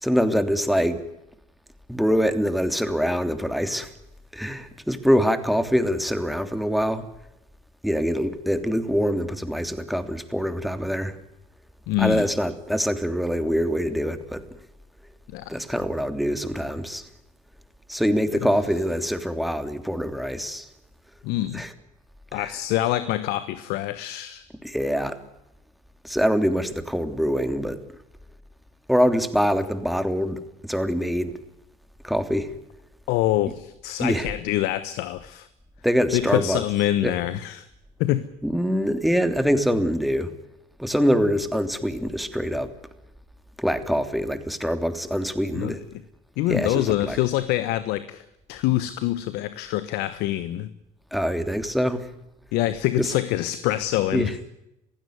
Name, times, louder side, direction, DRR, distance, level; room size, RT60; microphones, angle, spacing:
voice 1, 0.0-1.0 1.9-3.9 4.3-7.0 7.8-11.1 12.0-14.4 15.5-17.0 17.9-20.7 21.5-21.7 22.3-22.5 24.6-25.2 26.0-27.8 28.9-30.4 30.7-31.3 32.0-32.5 34.0-34.3 35.8-36.6 37.0-37.1 38.4-40.3 40.8-42.7 43.6-45.8 46.5-47.2 51.1-52.0 53.0-53.1 54.1-54.3, equal, ahead, 3.1 m, -24 dB
voice 2, 11.9-12.3 15.3-15.5 21.2-21.6 22.3-24.4 33.1-35.5 36.1-37.7 38.0-38.3 45.5-45.7 46.4-50.7 52.5-54.4, left 14 dB, 75° left, 1.2 m, -25 dB
23.0 x 16.0 x 9.5 m
hypercardioid pair, 65°, 17 cm